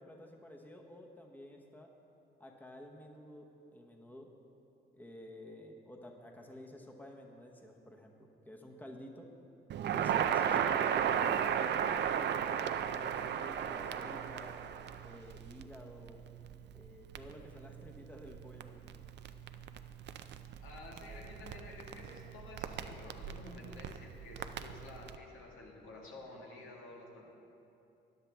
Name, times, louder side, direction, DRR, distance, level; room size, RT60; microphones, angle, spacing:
voice 1, 0.0-1.9 2.4-4.3 4.9-9.3 9.9-14.6 15.0-16.2 16.7-18.7, left 1 dB, 10° left, 2 dB, 1.0 m, -52 dB
Crackle, 9.7-25.2, right 8 dB, 60° right, 0.5 m, -36 dB
voice 2, 20.6-27.2, left 2 dB, 80° left, -2 dB, 2.0 m, -51 dB
13.5 x 9.8 x 3.4 m, 2.8 s
cardioid pair, 90°, 20 cm